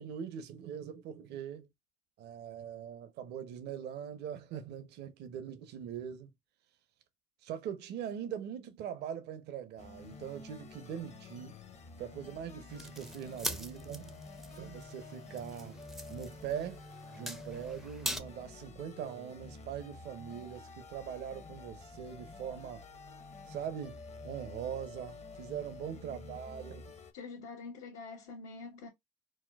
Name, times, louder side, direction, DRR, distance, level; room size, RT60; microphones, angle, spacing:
voice 1, 0.0-1.7 2.2-6.3 7.4-11.6 12.0-14.1 14.6-15.8 16.1-16.8 17.1-22.8 23.5-26.8, right 8 dB, 65° right, 0.7 m, -42 dB
sound 1, 9.8-27.1, left 4 dB, 35° left, 0.7 m, -50 dB
sound 2, 12.7-18.2, equal, ahead, 0.4 m, -42 dB
voice 2, 26.0-26.4 27.1-28.9, left 4 dB, 80° left, 1.0 m, -46 dB
4.2 x 2.2 x 2.3 m
supercardioid pair, 75°, 18 cm